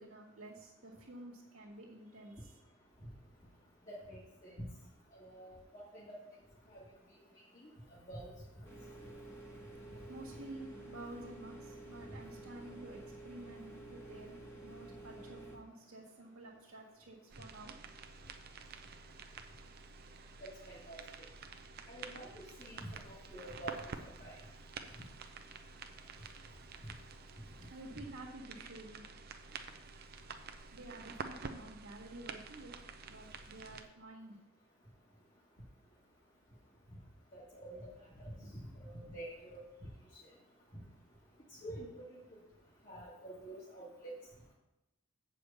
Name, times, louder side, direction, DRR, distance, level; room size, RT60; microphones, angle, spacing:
voice 1, 0.0-2.6 10.1-14.4 14.6-17.8 27.7-29.0 30.7-32.8 33.0-34.4 38.4-38.5, right 1 dB, 75° right, -3 dB, 1.7 m, -51 dB
voice 2, 3.9-4.7 5.1-6.2 6.7-6.8 8.1-8.3 20.4-21.0 21.9-23.8 24.2-24.4 26.8-26.9 37.3-37.9 38.2-38.3 38.8-39.6 41.6-42.2 42.9-44.1, right 1 dB, 35° left, -7 dB, 1.8 m, -47 dB
sound 1, 8.6-15.6, right 2 dB, 10° left, 1.3 m, -50 dB
sound 2, 17.3-33.8, right 4 dB, 45° right, 0.6 m, -49 dB
7.9 x 4.9 x 7.0 m, 0.96 s
head